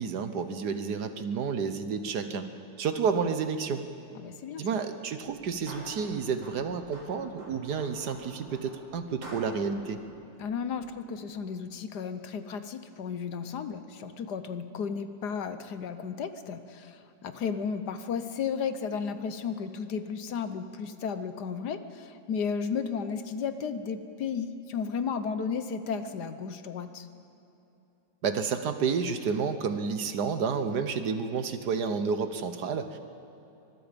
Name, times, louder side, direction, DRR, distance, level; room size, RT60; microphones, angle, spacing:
voice 1, 0.0-2.5 2.8-3.9 4.6-10.0 28.2-33.0, right 5 dB, 65° right, 9 dB, 1.5 m, -30 dB
voice 2, 4.1-4.6 10.4-27.1, left 6 dB, 65° left, 10 dB, 1.4 m, -34 dB
sound 1, 5.3-11.1, equal, 85° right, 7.5 m, -48 dB
24.0 x 22.0 x 5.2 m, 2.9 s
omnidirectional pair, 2.0 m